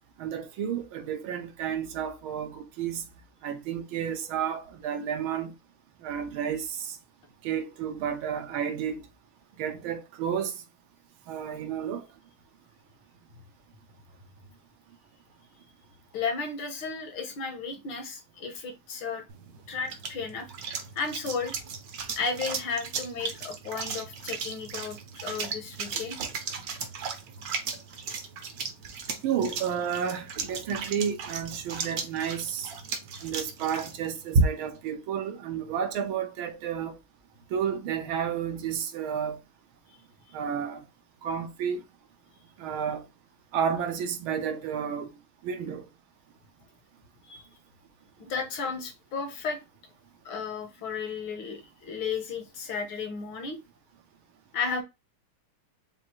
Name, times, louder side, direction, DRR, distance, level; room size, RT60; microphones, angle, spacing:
voice 1, 0.2-3.0 3.4-5.5 6.0-7.0 7.4-9.0 9.6-10.5 11.3-12.0 26.2-26.3 29.2-32.7 33.2-37.0 37.5-39.4 40.3-40.8 41.2-41.8 42.6-43.0 43.5-45.1 45.4-45.8, right 8 dB, 75° right, 1.5 m, -31 dB
voice 2, 16.1-19.2 19.7-20.5 21.0-21.6 22.2-26.2 47.3-47.4 48.2-49.6 50.3-53.6 54.5-54.8, left 5 dB, 70° left, 1.8 m, -33 dB
sound 1, 19.3-34.8, right 4 dB, 60° right, 1.1 m, -34 dB
6.1 x 2.6 x 2.8 m
omnidirectional pair, 2.3 m